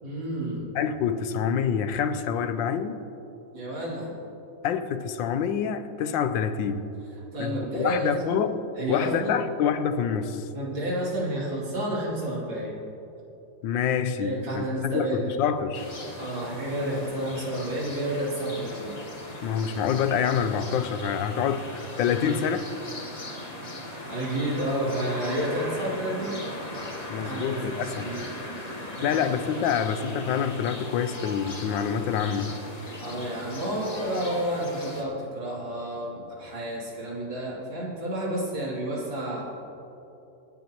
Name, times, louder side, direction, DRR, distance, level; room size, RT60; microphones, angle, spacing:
voice 1, 0.0-0.7 3.5-4.1 7.3-8.4 8.8-9.4 10.5-12.8 14.2-15.3 16.2-18.9 24.1-26.4 27.2-28.3 28.7-29.2 33.0-39.5, right 1 dB, 90° right, 3.7 m, -30 dB
voice 2, 0.7-3.0 4.6-6.9 7.4-8.6 8.9-10.5 13.6-15.9 19.4-21.6 22.0-22.7 27.1-28.2 29.0-32.5, left 7 dB, 85° left, 1.4 m, -27 dB
sound 1, 15.7-35.0, left 1 dB, 25° left, 1.3 m, -38 dB
26.5 x 9.6 x 3.0 m
omnidirectional pair, 2.0 m